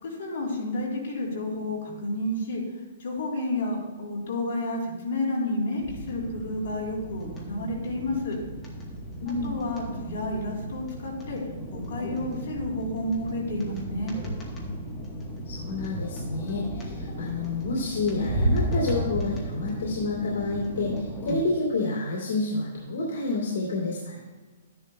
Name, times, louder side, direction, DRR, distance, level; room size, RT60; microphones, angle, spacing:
voice 1, 0.0-2.6 3.0-8.4 9.2-11.4 11.7-14.2, left 1 dB, 50° left, -4 dB, 3.3 m, -30 dB
sound 1, 5.8-21.4, right 1 dB, 10° left, 1.1 m, -34 dB
voice 2, 9.2-9.5 15.4-24.2, left 3 dB, 65° left, -4 dB, 2.5 m, -29 dB
12.5 x 10.5 x 2.2 m, 1.3 s
hypercardioid pair, 180°, 0 cm